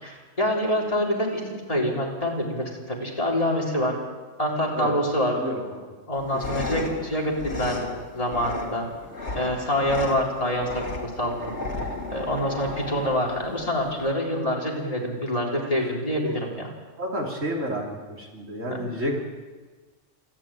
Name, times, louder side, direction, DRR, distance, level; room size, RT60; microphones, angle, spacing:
voice 1, 0.0-4.0 4.4-5.3 6.1-8.9 9.3-10.7 11.0-11.5 12.1-16.7 18.7-18.8, equal, 30° left, -2 dB, 4.1 m, -26 dB
voice 2, 5.4-5.8 6.5-6.6 16.2-16.4 17.0-17.9 18.2-19.2, equal, 85° right, -1 dB, 3.5 m, -30 dB
sound 1, 6.1-14.1, left 2 dB, 60° left, 2.6 m, -35 dB
27.5 x 10.5 x 9.0 m, 1.4 s
omnidirectional pair, 1.3 m